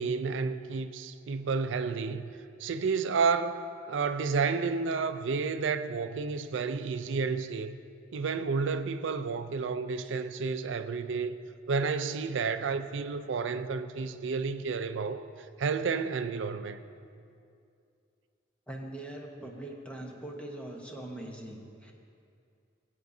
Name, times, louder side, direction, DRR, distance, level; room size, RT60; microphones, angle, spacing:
voice 1, 0.0-2.3 2.6-3.6 3.9-7.8 8.1-11.4 11.7-15.3 15.6-16.8, right 5 dB, 65° right, 10 dB, 0.4 m, -31 dB
voice 2, 18.7-21.9, right 1 dB, 5° left, 0 dB, 1.0 m, -42 dB
17.5 x 8.2 x 2.7 m, 2.5 s
head